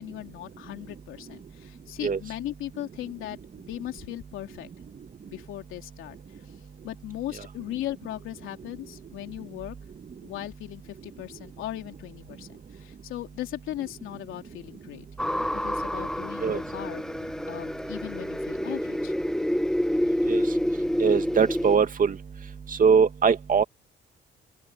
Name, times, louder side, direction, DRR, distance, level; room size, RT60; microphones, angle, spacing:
voice 1, 0.0-4.7 5.2-6.2 6.8-9.7 10.2-19.1, left 14 dB, 90° left, 3.2 m, -38 dB
sound 1, 15.2-21.8, equal, 5° left, 1.3 m, -28 dB
voice 2, 21.0-22.2 22.8-23.6, right 6 dB, 45° right, 2.3 m, -21 dB
open air
cardioid pair, 90°, 20 cm